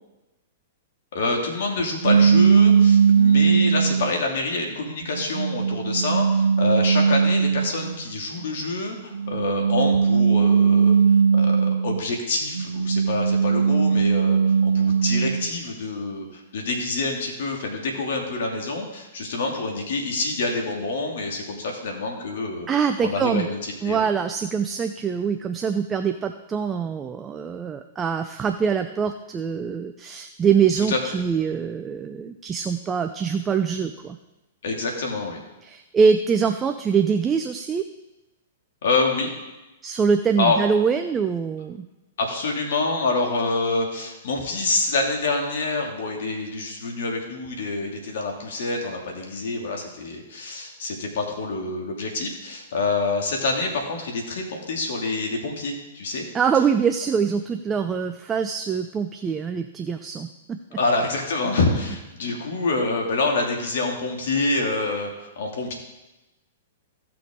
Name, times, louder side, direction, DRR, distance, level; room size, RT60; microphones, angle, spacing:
voice 1, 1.1-11.0 11.3-22.7 23.0-24.1 30.8-31.0 34.6-35.4 38.8-39.3 40.4-40.6 42.2-56.2 60.8-65.7, left 3 dB, 70° left, 1 dB, 2.5 m, -27 dB
sound 1, 2.0-4.2 4.9-8.0 9.1-12.1 12.5-15.5, right 6 dB, 85° right, 0.3 m, -19 dB
voice 2, 22.7-23.5 23.8-34.2 35.6-37.8 39.8-41.9 56.3-60.8, right 6 dB, 20° right, 7 dB, 0.5 m, -24 dB
16.0 x 6.0 x 3.8 m, 1.0 s
hypercardioid pair, 120°, 0 cm